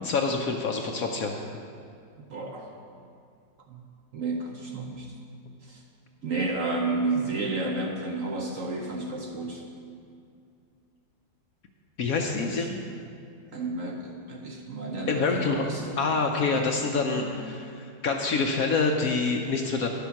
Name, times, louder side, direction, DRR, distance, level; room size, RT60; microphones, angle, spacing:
voice 1, 0.0-1.5 12.0-12.8 15.1-15.6 16.0-19.9, left 4 dB, 65° left, 3 dB, 0.9 m, -26 dB
voice 2, 2.3-2.7 3.7-3.8 4.1-5.1 5.6-5.8 6.2-9.6 12.4-12.6 13.5-16.0 16.5-16.7 17.1-17.3, right 3 dB, 55° right, 1 dB, 1.0 m, -31 dB
11.0 x 7.0 x 5.8 m, 2.4 s
omnidirectional pair, 2.0 m